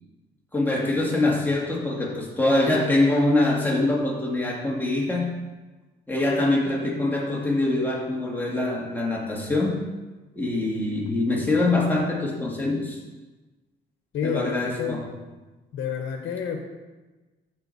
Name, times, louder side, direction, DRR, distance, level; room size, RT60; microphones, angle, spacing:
voice 1, 0.5-5.4 6.1-9.8 10.3-13.0 14.2-15.1, left 2 dB, 10° left, -3 dB, 2.4 m, -24 dB
voice 2, 14.1-15.0 15.7-16.6, left 7 dB, 70° left, 3 dB, 1.2 m, -29 dB
13.5 x 5.1 x 4.2 m, 1.2 s
cardioid pair, 90°, 20 cm